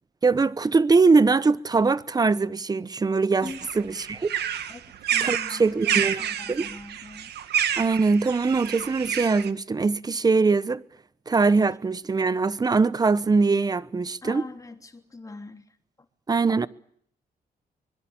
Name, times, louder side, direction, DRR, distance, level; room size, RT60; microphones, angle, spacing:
voice 1, 0.2-3.5 3.8-4.3 5.2-6.2 6.5-6.7 7.8-10.8 11.3-14.4 16.3-16.7, right 4 dB, 25° right, 1.0 m, -22 dB
sound 1, 3.4-9.5, right 9 dB, 80° right, 1.8 m, -29 dB
voice 2, 5.1-7.3 14.2-15.8, left 3 dB, 20° left, 3.2 m, -41 dB
24.5 x 22.5 x 8.9 m
cardioid pair, 125°, 17 cm